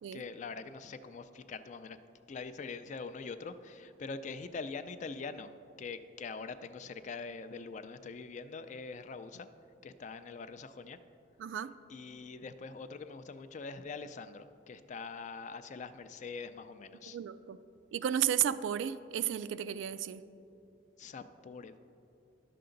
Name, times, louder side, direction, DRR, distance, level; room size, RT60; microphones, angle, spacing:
voice 1, 0.1-2.0 2.3-5.5 5.8-9.5 9.8-11.0 11.9-17.2 21.0-21.8, left 4 dB, 40° left, 11 dB, 0.3 m, -43 dB
voice 2, 11.4-11.7 17.1-17.6 17.9-20.2, right 10 dB, 90° right, 15 dB, 0.3 m, -33 dB
11.0 x 6.7 x 3.9 m, 2.7 s
head